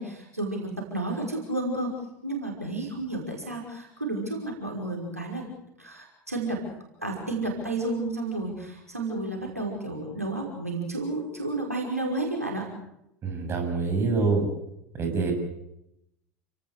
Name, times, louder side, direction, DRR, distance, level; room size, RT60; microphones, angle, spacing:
voice 1, 0.0-1.9 2.2-5.4 5.8-6.6 7.0-12.7, right 2 dB, 90° right, 0 dB, 5.5 m, -31 dB
voice 2, 13.2-14.5 14.9-15.3, right 4 dB, 30° right, 4 dB, 7.6 m, -25 dB
29.5 x 18.5 x 6.7 m, 0.81 s
figure-of-eight pair, 75°, 8 cm